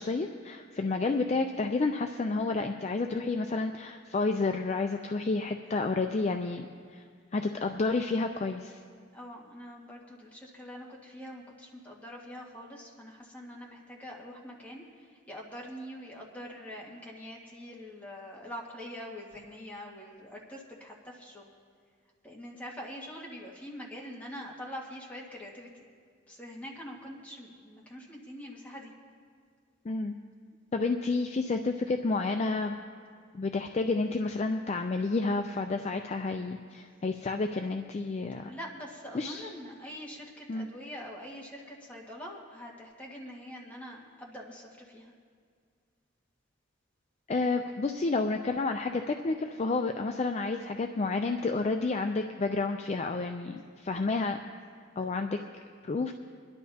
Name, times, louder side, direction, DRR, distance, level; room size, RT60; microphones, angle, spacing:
voice 1, 0.0-6.7 6.9-7.0 7.3-8.8 29.8-30.1 30.7-32.8 33.3-38.5 39.1-39.5 40.5-40.7 47.3-54.4 55.0-56.1, left 3 dB, 35° left, 5 dB, 0.4 m, -30 dB
voice 2, 9.1-21.5 22.2-25.8 26.3-28.9 38.4-45.1, equal, 10° left, -3 dB, 1.7 m, -44 dB
23.0 x 11.5 x 2.8 m, 2.1 s
head